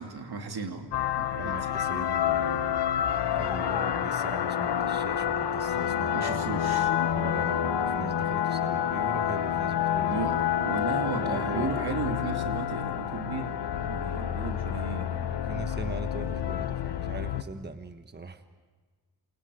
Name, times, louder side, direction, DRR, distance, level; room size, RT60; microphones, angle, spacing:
voice 1, 0.0-1.7 6.1-6.9 10.1-15.3, right 4 dB, 70° right, 4 dB, 2.6 m, -35 dB
sound 1, 0.9-17.4, left 9 dB, 90° left, 1.1 m, -28 dB
voice 2, 1.4-2.8 3.3-6.1 7.1-10.3 11.2-11.7 15.3-18.5, right 3 dB, 25° right, 8 dB, 1.3 m, -40 dB
28.0 x 28.0 x 5.0 m, 1.4 s
cardioid pair, 65°, 40 cm